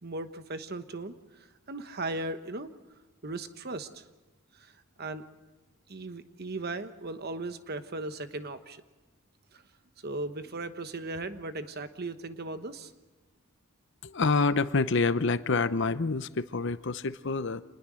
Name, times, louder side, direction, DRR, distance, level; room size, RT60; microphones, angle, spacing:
voice 1, 0.0-2.7 3.2-4.0 4.5-4.7 5.0-5.2 5.9-8.8 9.5-9.6 10.0-12.9, right 2 dB, 45° right, 10 dB, 1.2 m, -37 dB
voice 2, 14.0-17.6, left 4 dB, 55° left, 13 dB, 0.8 m, -27 dB
27.0 x 20.5 x 6.3 m, 1.1 s
head